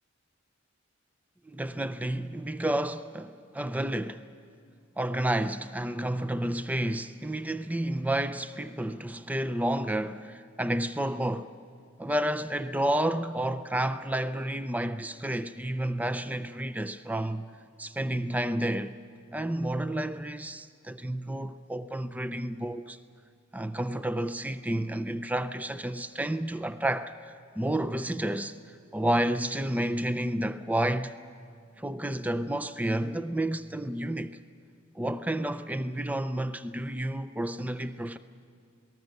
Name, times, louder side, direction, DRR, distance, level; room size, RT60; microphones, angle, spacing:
voice 1, 1.5-4.2 5.0-11.5 12.0-17.5 17.8-19.0 19.3-23.0 23.5-31.1 31.8-34.4 34.9-38.2, right 1 dB, 5° right, 0.5 m, -30 dB
27.5 x 19.0 x 6.6 m
head